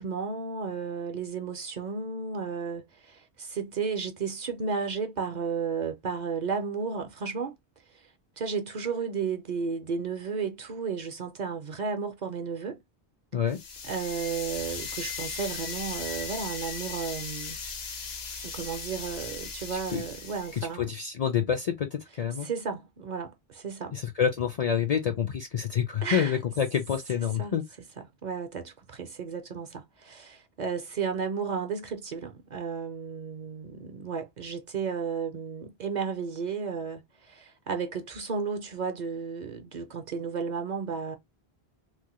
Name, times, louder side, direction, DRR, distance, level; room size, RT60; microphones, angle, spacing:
voice 1, 0.0-7.5 8.4-12.8 13.9-17.6 18.4-20.9 22.4-23.9 26.0-26.4 27.4-27.5 28.2-41.2, right 5 dB, 55° right, 0.6 m, -33 dB
sound 1, 13.5-20.7, left 5 dB, 80° left, 1.0 m, -38 dB
voice 2, 19.7-20.0 20.5-22.5 23.9-27.6, left 8 dB, 50° left, 0.5 m, -28 dB
3.2 x 2.1 x 2.9 m
omnidirectional pair, 1.0 m